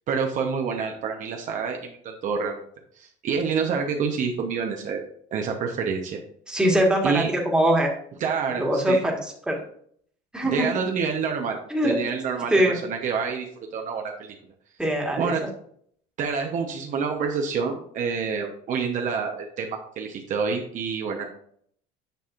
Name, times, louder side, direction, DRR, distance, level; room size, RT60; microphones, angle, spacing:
voice 1, 0.1-2.6 3.0-6.2 7.0-7.3 8.2-9.0 10.4-13.5 13.7-14.3 15.2-15.4 16.2-21.3, right 5 dB, 45° right, 2 dB, 0.9 m, -28 dB
voice 2, 6.5-7.9 8.6-9.6 10.3-10.7 11.7-12.0 12.5-12.8 14.8-15.3, equal, 5° right, -1 dB, 1.6 m, -22 dB
9.1 x 5.5 x 2.5 m, 0.62 s
cardioid pair, 135°, 17 cm